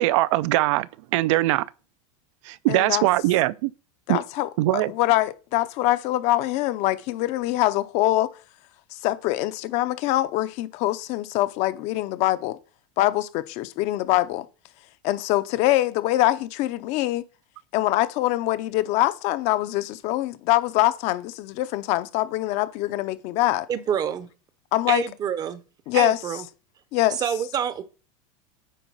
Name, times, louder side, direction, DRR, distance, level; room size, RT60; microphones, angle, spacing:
voice 1, 0.0-1.7 2.4-3.7 4.1-4.2 4.6-4.9, right 17 dB, 60° right, 0.4 m, -21 dB
voice 2, 2.7-3.1 4.1-8.3 8.9-12.6 13.0-14.5 15.0-17.2 17.7-23.7 24.7-25.0 25.9-26.2 26.9-27.2, left 16 dB, 40° left, 0.6 m, -24 dB
voice 3, 23.7-24.3 24.9-25.6 25.9-26.4 27.2-27.8, right 8 dB, 20° right, 0.7 m, -27 dB
9.3 x 3.9 x 5.5 m
supercardioid pair, 160°, 17 cm